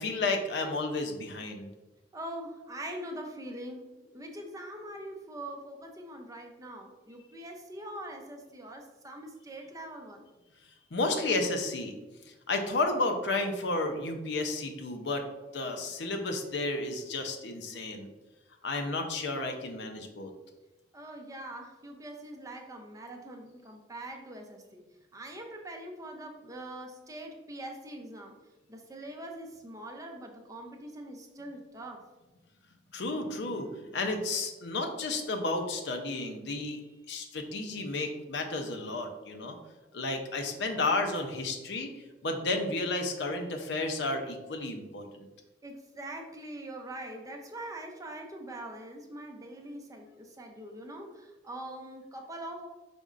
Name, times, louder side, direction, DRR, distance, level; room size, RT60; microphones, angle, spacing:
voice 1, 0.0-1.7 10.9-12.0 12.5-15.3 15.5-18.1 18.6-20.3 32.9-33.7 33.9-36.8 37.1-39.6 39.9-41.9 42.2-45.3, left 2 dB, 70° left, 5 dB, 0.6 m, -32 dB
voice 2, 2.1-10.3 20.9-24.8 25.1-28.4 28.7-32.0 45.6-52.7, right 1 dB, 20° right, 2 dB, 0.5 m, -43 dB
5.2 x 4.2 x 2.4 m, 1.1 s
head